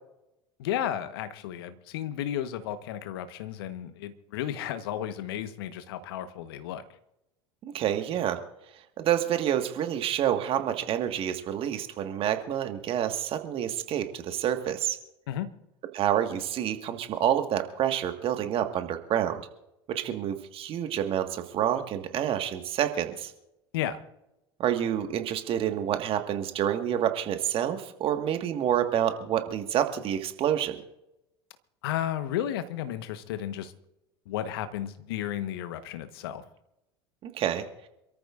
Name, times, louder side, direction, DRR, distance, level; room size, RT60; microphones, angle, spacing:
voice 1, 0.6-6.8 15.3-15.5 23.7-24.0 31.8-33.7 34.3-36.4, left 11 dB, 70° left, 10 dB, 1.3 m, -33 dB
voice 2, 7.6-8.4 9.0-15.0 15.9-19.4 19.9-23.3 24.6-30.8 37.2-37.7, right 10 dB, 45° right, 6 dB, 1.7 m, -28 dB
27.0 x 14.0 x 2.6 m, 0.89 s
figure-of-eight pair, 75°, 13 cm